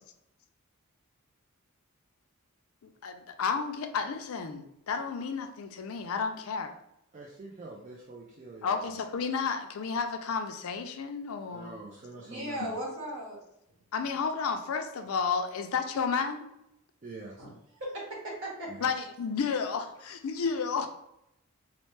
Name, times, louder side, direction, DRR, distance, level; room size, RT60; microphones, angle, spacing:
voice 1, 2.8-6.7 8.6-11.7 12.6-12.7 13.9-16.5 18.8-20.9, left 5 dB, 75° left, 6 dB, 0.4 m, -32 dB
voice 2, 7.1-9.0 11.5-12.7 17.0-17.4 18.7-18.9, right 2 dB, 35° right, -1 dB, 0.4 m, -45 dB
voice 3, 12.2-13.4 17.4-17.5 17.8-18.7, right 1 dB, 60° right, -4 dB, 1.4 m, -37 dB
4.2 x 2.1 x 3.1 m, 0.80 s
head